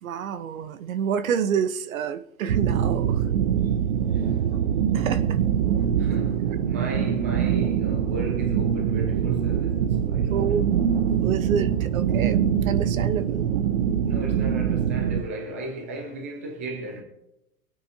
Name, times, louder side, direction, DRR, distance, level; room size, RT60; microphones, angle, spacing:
voice 1, 0.0-3.2 4.9-5.4 10.3-12.4 12.6-13.5, right 7 dB, 65° right, 1.1 m, -28 dB
sound 1, 2.5-15.2, right 8 dB, 45° right, 0.7 m, -23 dB
voice 2, 6.0-10.5 14.0-17.0, right 1 dB, 10° right, 0.4 m, -36 dB
23.5 x 8.8 x 2.8 m
hypercardioid pair, 165°, 44 cm